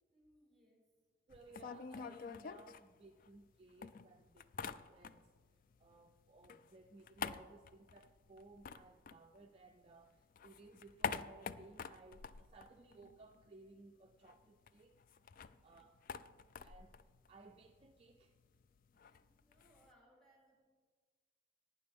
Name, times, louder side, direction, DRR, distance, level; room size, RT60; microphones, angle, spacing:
voice 1, 0.1-0.9 15.5-15.6 16.1-16.5 18.9-20.8, equal, ahead, -3 dB, 4.1 m, -71 dB
sound 1, 1.3-3.5 3.8-5.4 5.7-9.9 10.2-13.5 13.8-13.9 14.1-19.9, left 6 dB, 45° left, 0.3 m, -47 dB
voice 2, 1.3-5.3 5.8-15.0 15.6-16.0 16.6-17.0 17.3-18.3, right 3 dB, 30° right, 3 dB, 0.4 m, -60 dB
18.0 x 9.5 x 3.5 m, 1.5 s
head